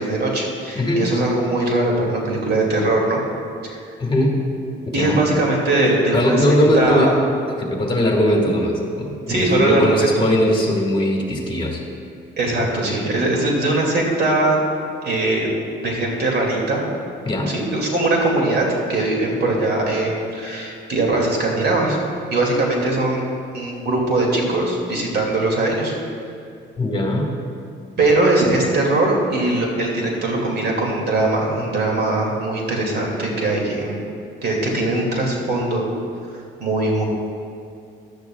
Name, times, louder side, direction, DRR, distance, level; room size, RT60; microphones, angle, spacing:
voice 1, 0.0-3.2 4.9-7.1 9.3-10.3 12.4-14.6 15.0-15.5 15.8-16.8 17.5-22.0 22.3-23.3 23.5-25.9 28.0-34.0 34.4-35.9 36.6-37.0, right 2 dB, 55° right, -1 dB, 2.4 m, -20 dB
voice 2, 0.7-1.1 4.0-4.4 4.9-5.2 6.1-7.2 7.6-11.8 17.2-17.5 26.8-27.3, left 1 dB, 25° left, 0 dB, 1.8 m, -19 dB
15.0 x 11.0 x 2.3 m, 2.5 s
cardioid pair, 90°, 20 cm